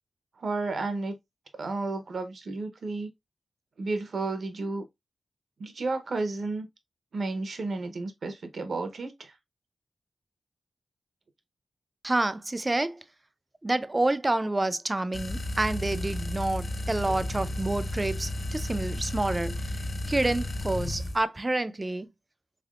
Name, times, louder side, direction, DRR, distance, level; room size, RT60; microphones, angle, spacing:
voice 1, 0.4-1.1 1.6-3.1 3.8-4.8 5.6-6.7 7.1-9.3, right 3 dB, 70° right, 0.8 m, -32 dB
voice 2, 12.0-13.0 13.6-19.6 20.1-22.1, right 2 dB, 20° right, 0.4 m, -28 dB
sound 1, 15.1-21.2, left 1 dB, 45° left, 0.7 m, -33 dB
3.5 x 3.4 x 2.4 m
wide cardioid pair, 90°, 0 cm